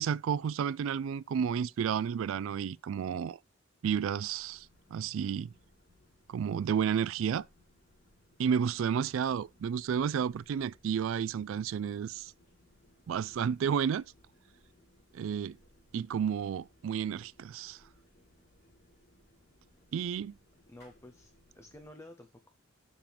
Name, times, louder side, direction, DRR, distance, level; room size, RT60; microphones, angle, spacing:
voice 1, 0.0-3.4 3.8-4.7 4.9-5.5 6.3-7.4 8.4-12.3 13.1-14.0 15.1-15.6 15.9-17.8 19.9-20.4, right 7 dB, 75° right, 0.3 m, -31 dB
sound 1, 3.9-21.9, left 1 dB, 50° left, 4.7 m, -65 dB
voice 2, 20.7-22.5, left 1 dB, 15° left, 0.7 m, -52 dB
7.1 x 5.8 x 3.4 m
head